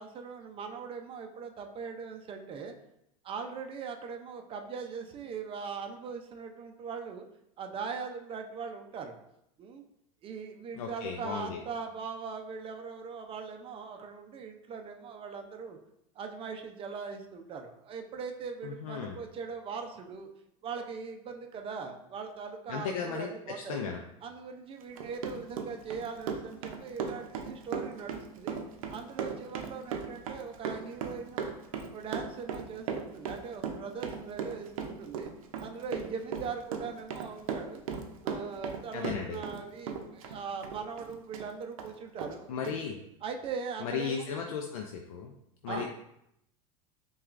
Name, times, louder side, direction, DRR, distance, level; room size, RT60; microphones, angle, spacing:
voice 1, 0.0-2.7 3.2-7.2 7.6-9.2 9.6-9.8 10.2-15.8 16.2-20.3 20.6-23.8 24.2-28.6 28.9-31.5 31.9-35.3 35.6-37.8 38.2-42.8 43.2-44.3 45.7-45.8, right 5 dB, 30° right, 5 dB, 0.5 m, -40 dB
voice 2, 10.8-11.6 18.6-19.2 22.7-23.3 23.7-24.0 38.9-39.4 42.5-43.0 43.8-45.3 45.6-45.8, left 6 dB, 90° left, 2 dB, 0.4 m, -35 dB
Run, 24.8-39.6 39.9-41.5 41.8-41.9 42.2-42.3 42.6-42.8, right 6 dB, 85° right, 0.6 m, -37 dB
5.7 x 2.3 x 2.5 m, 0.80 s
supercardioid pair, 115°, 17 cm